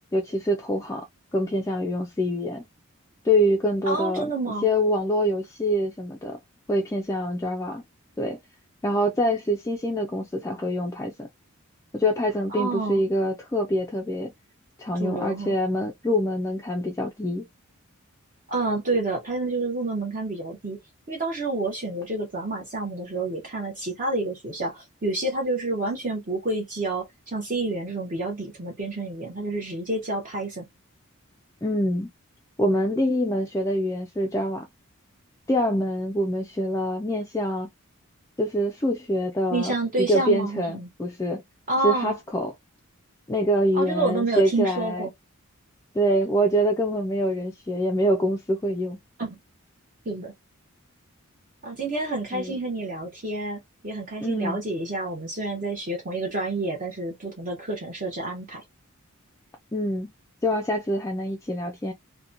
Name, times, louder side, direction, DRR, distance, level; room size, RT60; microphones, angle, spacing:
voice 1, 0.1-1.0 1.3-2.6 3.2-4.3 4.6-6.4 6.7-7.8 8.2-8.4 8.8-11.3 11.9-14.3 14.8-17.5 31.6-32.1 32.6-34.7 35.5-37.7 38.4-41.4 41.8-42.5 43.3-45.1 45.9-49.0 52.3-52.6 54.2-54.6 59.7-60.1 60.4-61.9, equal, 15° left, 0.3 m, -25 dB
voice 2, 3.8-4.7 12.5-13.0 15.0-15.6 18.5-20.8 21.1-30.6 39.5-40.9 41.7-42.1 43.7-45.1 49.2-49.4 50.1-50.3 51.6-58.6, right 2 dB, 35° right, 0.7 m, -29 dB
2.8 x 2.2 x 2.4 m
head